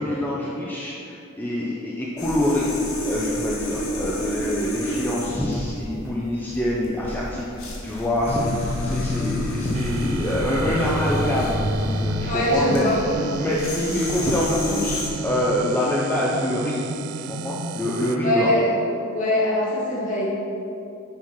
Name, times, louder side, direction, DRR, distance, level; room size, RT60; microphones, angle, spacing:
voice 1, 0.0-2.7 3.0-12.9 13.4-16.8 17.3-18.5, left 1 dB, 10° left, -7 dB, 0.6 m, -25 dB
sound 1, 2.2-15.1, left 1 dB, 75° left, 1.4 m, -28 dB
sound 2, 9.7-18.2, right 4 dB, 90° right, 0.4 m, -33 dB
voice 2, 12.2-13.3 18.2-18.8 19.1-20.3, equal, 35° left, -5 dB, 1.6 m, -22 dB
7.2 x 4.4 x 5.9 m, 2.7 s
head